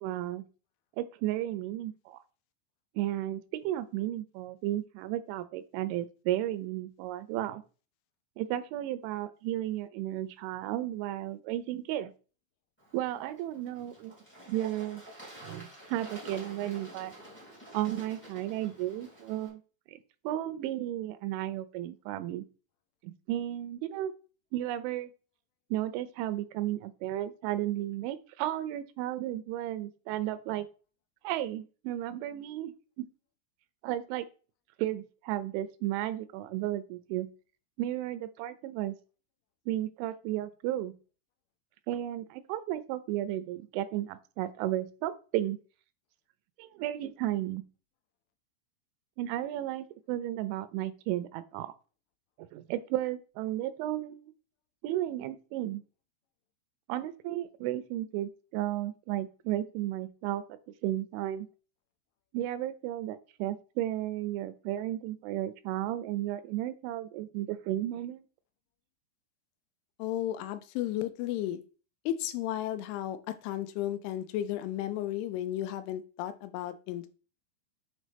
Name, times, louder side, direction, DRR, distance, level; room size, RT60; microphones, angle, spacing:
voice 1, 0.0-0.4 1.0-2.2 3.0-7.6 8.4-12.1 12.9-14.1 14.5-15.0 15.4-17.1 17.7-19.6 19.9-22.4 23.0-24.1 24.5-25.1 25.7-30.7 31.2-33.0 33.8-34.3 34.8-37.3 37.8-39.0 39.7-40.9 41.9-45.6 46.6-47.6 49.2-51.7 52.4-54.3 54.8-55.8 56.9-60.4 60.8-61.5 62.3-68.3, right 13 dB, 85° right, 12 dB, 2.9 m, -34 dB
Bird / Water, 12.8-19.5, right 1 dB, 10° left, 0.6 m, -50 dB
voice 2, 70.0-71.6 72.1-73.2 73.4-77.1, left 12 dB, 90° left, 12 dB, 3.1 m, -33 dB
7.2 x 4.1 x 3.4 m, 0.36 s
omnidirectional pair, 5.4 m